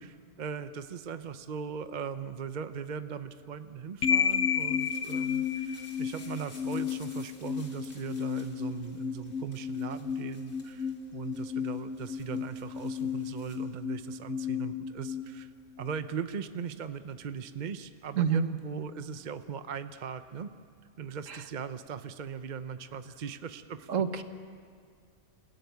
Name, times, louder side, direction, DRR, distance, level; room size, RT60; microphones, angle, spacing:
voice 1, 0.0-15.5 15.8-20.5 21.0-24.2, right 6 dB, 40° right, 10 dB, 0.7 m, -39 dB
sound 1, 4.0-16.1, left 7 dB, 70° left, 1.2 m, -33 dB
sound 2, 4.1-13.6, left 2 dB, 35° left, 2.9 m, -57 dB
voice 2, 18.1-18.5 21.3-21.4 23.9-24.2, right 7 dB, 60° right, 8 dB, 1.5 m, -27 dB
28.0 x 15.5 x 9.4 m, 2.1 s
omnidirectional pair, 1.6 m